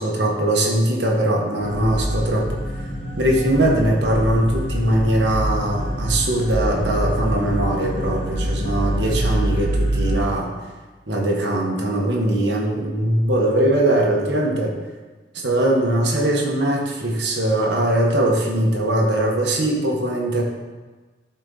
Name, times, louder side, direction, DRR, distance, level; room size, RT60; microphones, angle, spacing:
voice 1, 0.0-2.6 3.2-10.5 11.1-14.7 15.3-20.4, right 1 dB, 75° right, -1 dB, 1.4 m, -21 dB
sound 1, 1.6-10.2, right 1 dB, 40° left, 1.0 m, -25 dB
12.0 x 4.4 x 4.0 m, 1.3 s
head